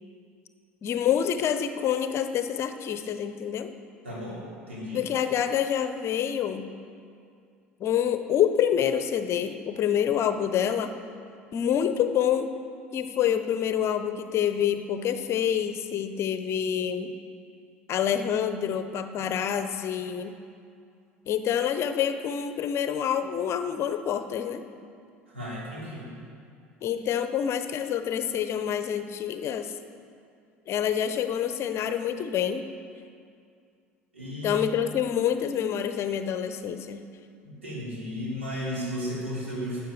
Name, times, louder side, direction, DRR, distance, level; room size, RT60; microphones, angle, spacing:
voice 1, 0.8-3.8 4.9-6.7 7.8-10.9 11.5-12.5 12.9-17.1 17.9-20.3 21.3-24.6 26.8-29.7 30.7-32.6 34.4-37.0, left 9 dB, 40° left, 10 dB, 0.8 m, -27 dB
voice 2, 4.0-5.1 25.3-26.1 34.1-34.6 37.4-39.8, equal, 80° right, -6 dB, 3.5 m, -34 dB
12.5 x 8.3 x 6.5 m, 2.4 s
figure-of-eight pair, 65°, 7 cm